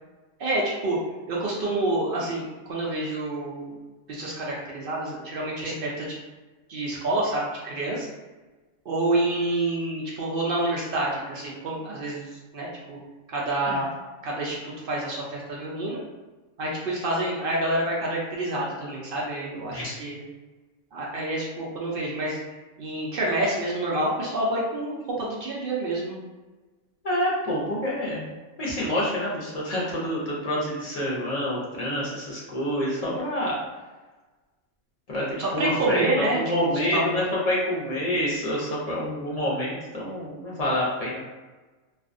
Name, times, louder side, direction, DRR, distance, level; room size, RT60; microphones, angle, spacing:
voice 1, 0.4-1.0 1.3-3.8 4.1-6.1 6.7-8.1 8.9-13.0 13.3-13.9 14.2-16.0 16.6-20.2 20.9-22.4 22.8-26.2 35.4-37.2, right 2 dB, 65° right, -4 dB, 0.5 m, -28 dB
voice 2, 27.0-28.3 28.6-33.6 35.1-36.0 36.3-41.2, equal, 45° left, -6 dB, 0.5 m, -27 dB
2.5 x 2.3 x 2.5 m, 1.2 s
omnidirectional pair, 1.5 m